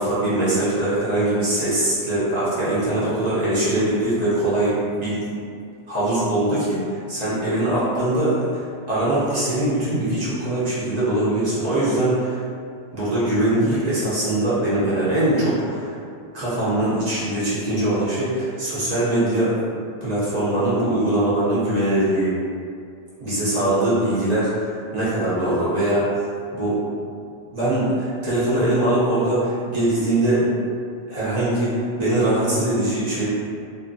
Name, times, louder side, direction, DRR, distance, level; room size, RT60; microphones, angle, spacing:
voice 1, 0.0-5.2 5.9-12.4 12.9-15.9 16.3-19.5 20.0-22.3 23.2-26.1 26.5-26.8 27.5-30.5 31.1-33.3, right 1 dB, 40° right, -11 dB, 0.9 m, -22 dB
2.6 x 2.5 x 2.5 m, 2.3 s
omnidirectional pair, 1.2 m